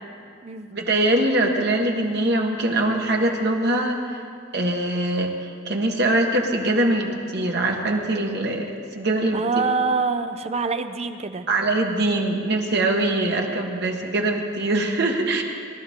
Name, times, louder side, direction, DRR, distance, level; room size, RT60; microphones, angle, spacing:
voice 1, 0.7-4.2 4.5-5.4 5.6-9.4 11.5-15.4, right 2 dB, 60° right, 1 dB, 1.6 m, -22 dB
voice 2, 9.3-11.5, right 4 dB, 35° right, 9 dB, 0.6 m, -25 dB
22.0 x 13.0 x 3.7 m, 2.3 s
head